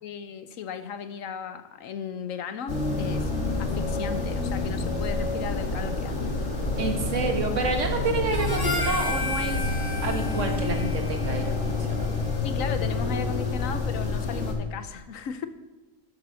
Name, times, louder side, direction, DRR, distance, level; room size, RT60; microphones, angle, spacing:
voice 1, 0.0-3.3 3.6-6.3 12.4-15.5, left 7 dB, 85° left, 10 dB, 1.2 m, -36 dB
sound 1, 2.7-14.5, left 3 dB, 60° left, 1.9 m, -28 dB
voice 2, 6.8-9.7 10.0-12.1, right 3 dB, 65° right, 4 dB, 1.7 m, -29 dB
Harmonica, 8.3-12.8, left 3 dB, 20° left, 1.2 m, -34 dB
9.1 x 7.8 x 6.2 m, 1.1 s
omnidirectional pair, 1.4 m